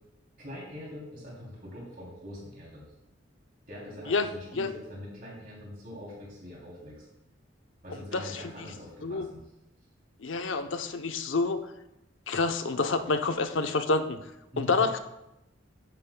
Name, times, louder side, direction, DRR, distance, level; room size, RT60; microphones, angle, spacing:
voice 1, 0.4-2.9 3.7-7.0 7.8-9.4 14.5-14.8, left 1 dB, 45° right, -4 dB, 3.1 m, -43 dB
voice 2, 10.2-11.7 12.3-14.2 14.6-15.0, left 3 dB, 90° left, 7 dB, 0.8 m, -28 dB
14.0 x 9.2 x 2.3 m, 0.90 s
head